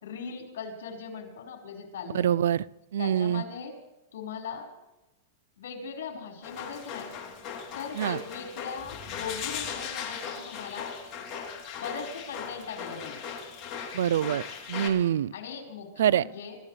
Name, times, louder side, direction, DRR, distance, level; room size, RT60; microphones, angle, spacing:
voice 1, 0.0-2.3 3.0-3.7 4.1-4.7 5.6-7.2 7.7-10.9 11.8-13.2 15.3-16.6, left 6 dB, 75° left, 1 dB, 5.0 m, -39 dB
voice 2, 2.1-2.6 2.9-3.4 8.0-8.2 13.9-14.4 14.7-15.3 16.0-16.2, right 10 dB, 80° right, 23 dB, 0.4 m, -25 dB
sound 1, 6.4-14.9, left 7 dB, 40° left, 3.3 m, -38 dB
25.5 x 15.5 x 3.3 m, 0.99 s
hypercardioid pair, 125°, 0 cm